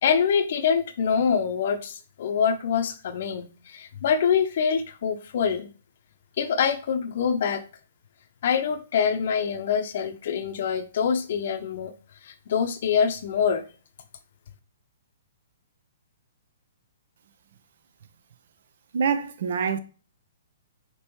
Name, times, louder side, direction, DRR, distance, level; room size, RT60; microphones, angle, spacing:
voice 1, 0.0-5.7 6.4-7.6 8.4-11.9 12.2-13.7, left 7 dB, 60° left, 0.7 m, -25 dB
voice 2, 18.9-19.8, right 6 dB, 65° right, 0.6 m, -25 dB
5.3 x 2.9 x 3.1 m
hypercardioid pair, 130°, 0 cm